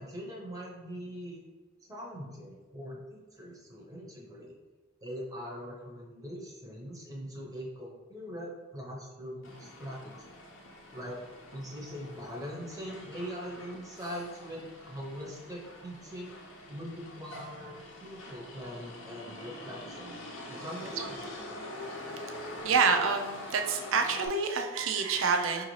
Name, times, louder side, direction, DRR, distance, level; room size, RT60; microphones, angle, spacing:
voice 1, 0.0-1.4 1.9-4.5 5.0-10.2 10.9-11.2 11.5-16.3 16.7-20.2 20.5-21.1, equal, 15° right, -3 dB, 0.6 m, -42 dB
Motor vehicle (road), 9.4-24.3, left 1 dB, 65° left, 0.6 m, -45 dB
voice 2, 22.6-25.7, right 5 dB, 70° right, 4 dB, 0.4 m, -27 dB
4.7 x 2.6 x 3.0 m, 1.3 s
head